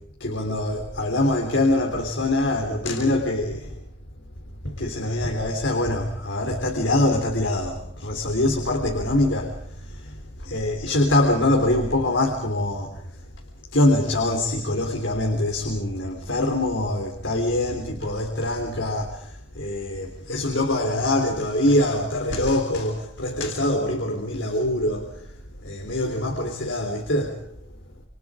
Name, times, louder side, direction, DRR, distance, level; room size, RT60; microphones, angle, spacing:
voice 1, 0.2-3.8 4.6-13.2 13.7-27.4, left 1 dB, 90° left, 3 dB, 3.6 m, -24 dB
28.0 x 25.5 x 5.1 m, 0.66 s
head